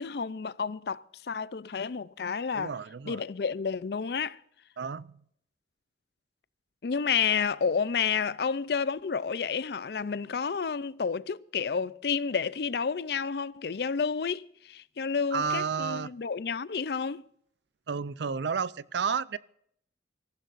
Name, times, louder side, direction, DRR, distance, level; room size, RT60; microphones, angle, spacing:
voice 1, 0.0-2.7 3.1-4.4 6.8-17.2, left 6 dB, 60° left, 0.5 m, -30 dB
voice 2, 2.5-3.2 4.8-5.2 15.3-16.1 17.9-19.4, right 6 dB, 75° right, 0.5 m, -31 dB
24.5 x 15.0 x 2.6 m
head